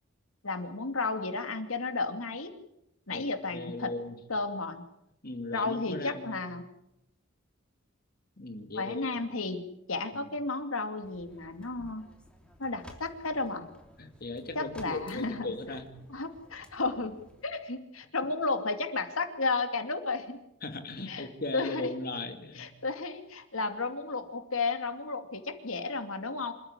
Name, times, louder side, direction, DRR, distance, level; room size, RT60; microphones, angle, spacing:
voice 1, 0.4-2.5 3.1-3.9 4.3-4.8 5.5-6.6 8.7-9.6 9.9-12.1 12.6-13.7 14.5-15.5 16.1-17.2 17.4-20.4 21.1-21.3 21.5-21.9 22.5-26.5, left 3 dB, 90° left, 7 dB, 2.6 m, -33 dB
voice 2, 3.5-4.1 5.2-6.4 8.4-9.0 10.1-10.3 14.0-16.0 20.6-22.7, left 2 dB, 45° left, 7 dB, 2.6 m, -38 dB
sound 1, 11.0-17.5, equal, 5° left, 3.2 m, -55 dB
27.0 x 14.5 x 9.8 m, 0.82 s
head